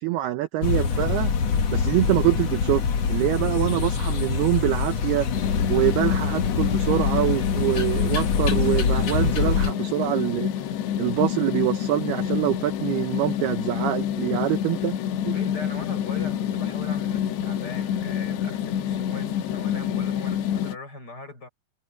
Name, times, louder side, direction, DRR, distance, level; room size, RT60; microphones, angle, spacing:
voice 1, 0.0-1.3 1.7-2.8 3.1-5.3 5.7-10.5 11.0-14.9 15.2-15.3, right 16 dB, 75° right, 2.5 m, -25 dB
sound 1, 0.6-9.7, left 6 dB, 50° left, 2.0 m, -25 dB
sound 2, 5.3-20.8, left 10 dB, 75° left, 3.4 m, -27 dB
voice 2, 15.3-21.5, left 2 dB, 20° left, 6.6 m, -40 dB
omnidirectional pair, 5.2 m